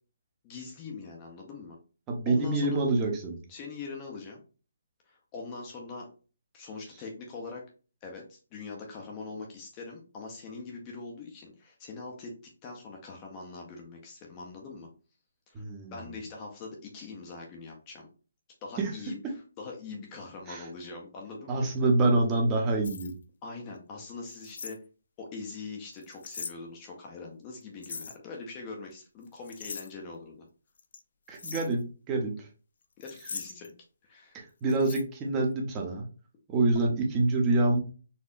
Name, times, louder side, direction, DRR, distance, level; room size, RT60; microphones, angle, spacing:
voice 1, 0.4-1.8 2.3-2.8 3.5-4.4 5.1-6.1 6.5-7.6 8.0-14.9 15.5-15.6 15.9-18.1 18.6-21.7 23.4-24.8 25.2-30.4 33.0-33.7 34.0-34.4, left 4 dB, 25° left, 0 dB, 0.7 m, -42 dB
voice 2, 2.1-3.4 15.5-15.9 18.8-18.9 20.5-20.6 21.5-23.1 31.3-31.8 32.1-32.5 34.3-36.0 36.5-37.8, right 2 dB, 20° right, 1 dB, 0.8 m, -26 dB
sound 1, 22.8-23.1 24.3-24.8 25.9-26.5 27.8-28.2 29.2-29.9 30.8-31.0 31.3-31.7 33.0-33.7 34.7-35.0, left 5 dB, 60° left, 0.4 m, -40 dB
4.2 x 2.7 x 2.5 m, 0.36 s
figure-of-eight pair, 145°, 0 cm